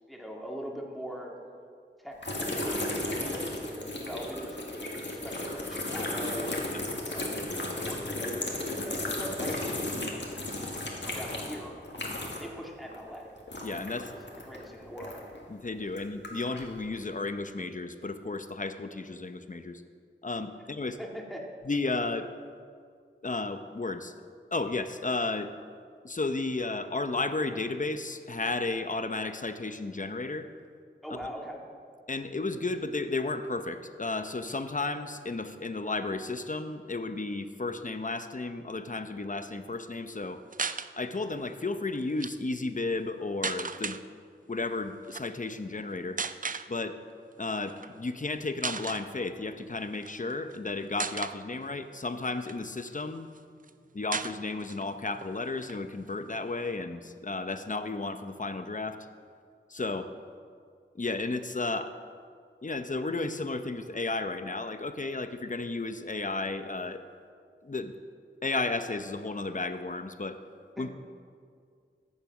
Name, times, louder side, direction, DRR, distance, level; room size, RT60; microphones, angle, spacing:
voice 1, 0.1-1.3 2.0-2.8 3.1-6.6 7.1-9.9 10.6-10.8 11.1-11.8 12.4-13.3 13.9-14.0 14.4-15.2 21.0-21.4 31.0-31.6 70.8-70.9, equal, ahead, -1 dB, 2.2 m, -41 dB
sound 1, 2.2-12.6 12.8-15.4 15.9-16.7, left 1 dB, 65° left, 1.9 m, -34 dB
voice 2, 13.6-14.1 15.5-19.8 20.2-21.0 21.6-22.3 23.2-24.1 24.5-25.5 26.0-30.5 32.1-40.4 41.0-44.0 44.5-46.2 46.7-47.0 47.4-53.3 53.9-59.0 59.7-60.1 61.0-62.0 62.6-67.0 67.6-67.9 68.4-70.4 70.8-70.9, left 3 dB, 40° left, 9 dB, 0.8 m, -33 dB
sound 2, 40.5-40.9 42.0-42.3 43.4-44.0 45.0-45.2 46.2-46.7 47.7-47.9 48.3-48.4 48.6-49.1 49.9-50.6 51.0-51.4 52.0-53.0 53.4-53.5 53.6-53.7 54.1-54.9 55.2-55.3 55.6-56.7, right 5 dB, 45° right, 0.4 m, -35 dB
14.5 x 6.8 x 6.0 m, 2.2 s
wide cardioid pair, 45°, 20 cm